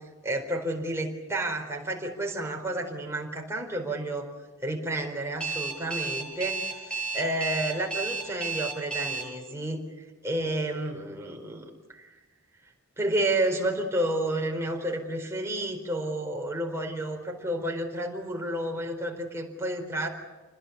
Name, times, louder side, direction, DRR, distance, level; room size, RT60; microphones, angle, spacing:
voice 1, 0.2-4.3 4.6-9.8 10.2-12.1 13.0-20.1, right 1 dB, 10° right, 1 dB, 4.3 m, -31 dB
Alarm, 5.4-9.2, right 5 dB, 5° left, 7.2 m, -31 dB
28.0 x 21.0 x 8.2 m, 1.2 s
head